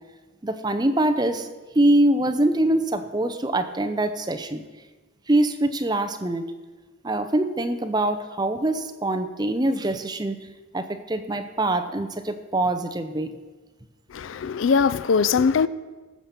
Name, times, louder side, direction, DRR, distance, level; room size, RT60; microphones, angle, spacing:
voice 1, 0.4-1.5 1.7-4.6 5.3-6.4 7.0-10.4 10.7-13.3, right 1 dB, 20° right, 0.6 m, -24 dB
voice 2, 14.1-15.7, left 5 dB, 75° left, 0.4 m, -21 dB
14.5 x 5.8 x 6.8 m
head